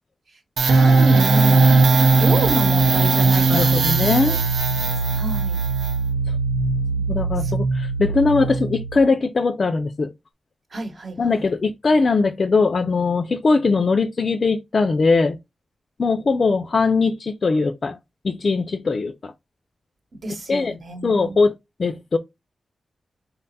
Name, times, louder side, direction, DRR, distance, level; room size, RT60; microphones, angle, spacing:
voice 1, 0.6-1.7 2.1-3.8 4.2-4.4 4.7-5.6 7.4-7.5 10.7-11.4 20.2-21.4, right 2 dB, 45° right, 1.0 m, -29 dB
sound 1, 0.6-9.0, right 3 dB, 85° right, 0.7 m, -18 dB
voice 2, 3.5-4.4 7.0-10.1 11.2-15.4 16.0-18.0 18.2-19.3 20.5-20.7 21.0-21.5 21.8-22.2, left 4 dB, 45° left, 0.4 m, -20 dB
4.0 x 2.2 x 4.0 m
wide cardioid pair, 135°, 0 cm